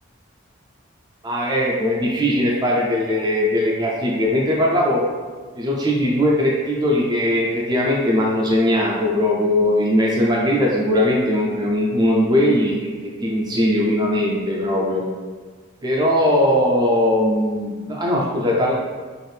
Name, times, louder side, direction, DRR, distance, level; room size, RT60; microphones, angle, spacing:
voice 1, 1.2-5.0 5.5-12.7 13.0-15.0 15.8-18.7, left 1 dB, 20° right, -3 dB, 0.5 m, -19 dB
4.5 x 2.5 x 3.3 m, 1.5 s
head